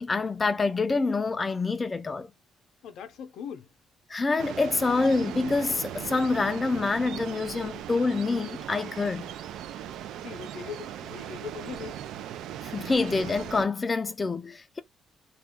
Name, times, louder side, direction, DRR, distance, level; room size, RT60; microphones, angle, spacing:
voice 1, 0.0-2.3 4.1-9.3 12.6-14.8, left 3 dB, 25° left, 0.3 m, -26 dB
voice 2, 2.8-3.7 10.2-12.0, left 7 dB, 80° left, 0.6 m, -40 dB
sound 1, 4.4-13.7, right 11 dB, 85° right, 0.3 m, -38 dB
2.4 x 2.0 x 3.5 m
cardioid pair, 90°, 0 cm